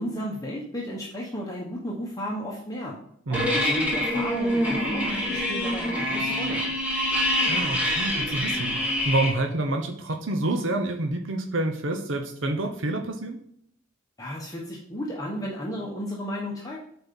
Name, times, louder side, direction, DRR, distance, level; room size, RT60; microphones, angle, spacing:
voice 1, 0.0-3.0 3.3-6.6 14.2-16.8, equal, 15° left, -3 dB, 1.1 m, -33 dB
sound 1, 3.3-9.3, left 1 dB, 5° right, 1.8 m, -26 dB
voice 2, 7.5-13.4, right 2 dB, 70° right, 4 dB, 0.8 m, -28 dB
7.9 x 4.4 x 5.4 m, 0.66 s
head